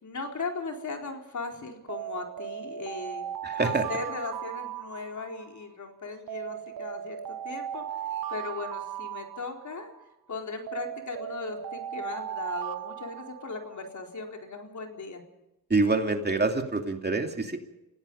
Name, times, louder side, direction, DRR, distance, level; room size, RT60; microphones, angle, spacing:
voice 1, 0.0-3.3 3.5-7.2 7.4-7.8 8.3-9.9 10.3-15.2, left 4 dB, 50° left, 3 dB, 4.4 m, -37 dB
Alarm, 1.9-5.6 6.3-10.0 10.7-13.9, right 10 dB, 65° right, 1.0 m, -37 dB
voice 2, 3.4-3.9 15.7-17.6, right 3 dB, 25° right, 4 dB, 2.8 m, -26 dB
29.5 x 17.0 x 5.6 m, 0.97 s
cardioid pair, 85°, 37 cm